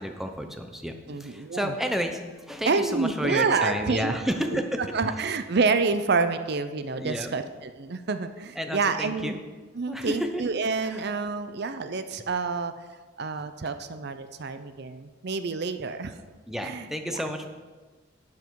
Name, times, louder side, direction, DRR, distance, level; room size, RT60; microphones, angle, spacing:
voice 1, 0.0-0.9 1.2-2.2 2.5-4.8 7.0-7.4 8.6-9.4 9.9-10.4 16.5-17.5, equal, ahead, 5 dB, 0.8 m, -30 dB
voice 2, 1.1-1.8 2.6-4.1 4.5-9.4 9.7-12.7 13.2-16.1 16.6-17.2, right 4 dB, 55° right, 10 dB, 0.6 m, -28 dB
12.0 x 8.2 x 4.7 m, 1.4 s
head